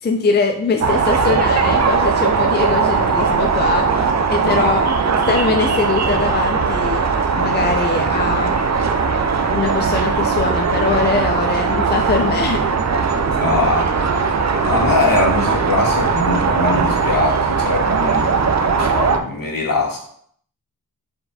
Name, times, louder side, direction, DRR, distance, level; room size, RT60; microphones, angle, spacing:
voice 1, 0.0-4.8 5.3-7.0 7.3-8.6 9.5-12.6, left 4 dB, 25° left, 4 dB, 0.5 m, -22 dB
sound 1, 0.8-19.2, right 5 dB, 45° right, 0.5 m, -19 dB
voice 2, 13.4-13.9 14.7-20.0, left 2 dB, 60° left, 0 dB, 1.4 m, -21 dB
4.4 x 4.2 x 2.7 m, 0.63 s
cardioid pair, 50°, 38 cm